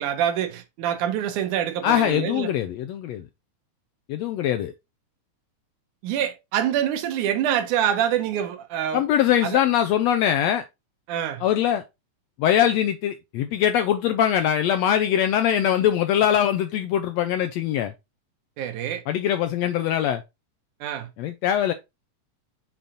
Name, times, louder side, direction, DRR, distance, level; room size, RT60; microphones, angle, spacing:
voice 1, 0.0-2.5 6.0-9.0 9.4-9.6 11.1-11.4 18.6-19.0 20.8-21.1, right 10 dB, 80° right, 2.3 m, -25 dB
voice 2, 1.8-3.2 4.1-4.7 8.9-10.6 11.4-11.8 12.4-17.9 19.1-20.2 21.2-21.7, left 10 dB, 85° left, 1.5 m, -22 dB
7.1 x 3.8 x 3.9 m
omnidirectional pair, 3.5 m